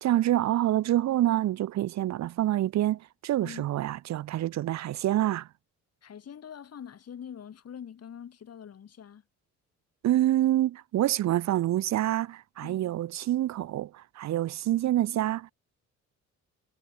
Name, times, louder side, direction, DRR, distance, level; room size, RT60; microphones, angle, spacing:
voice 1, 0.0-5.5 10.0-15.5, right 13 dB, 65° right, 0.7 m, -27 dB
voice 2, 6.0-9.2 12.6-12.9, left 8 dB, 55° left, 5.3 m, -44 dB
cardioid pair, 90°, 30 cm